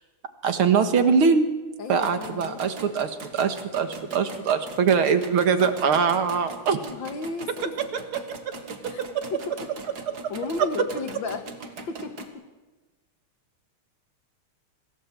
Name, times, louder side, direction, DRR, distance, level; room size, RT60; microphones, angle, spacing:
voice 1, 0.4-1.5 1.9-6.8 7.9-8.2 8.8-9.2 10.1-10.3 10.8-10.9, right 6 dB, 70° right, 7 dB, 2.4 m, -23 dB
voice 2, 1.8-2.6 6.8-7.8 8.9-9.0 9.3-9.7 10.3-11.4 11.9-12.4, left 4 dB, 60° left, 7 dB, 2.4 m, -33 dB
sound 1, 1.9-12.3, right 3 dB, 45° right, 2.4 m, -42 dB
25.5 x 16.0 x 7.6 m, 1.2 s
omnidirectional pair, 2.4 m